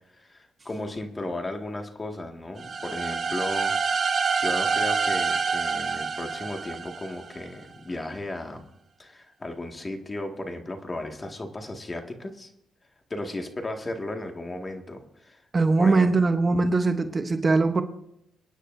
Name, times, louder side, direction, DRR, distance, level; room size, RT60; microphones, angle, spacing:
voice 1, 0.1-8.7 9.0-12.5 13.1-15.4 15.8-16.1, left 2 dB, 25° left, 4 dB, 1.9 m, -35 dB
sound 1, 2.6-7.4, right 5 dB, 45° right, 1.5 m, -27 dB
voice 2, 15.5-17.8, right 3 dB, 30° right, 7 dB, 0.9 m, -21 dB
28.0 x 9.8 x 2.7 m, 0.75 s
cardioid pair, 90°, 0 cm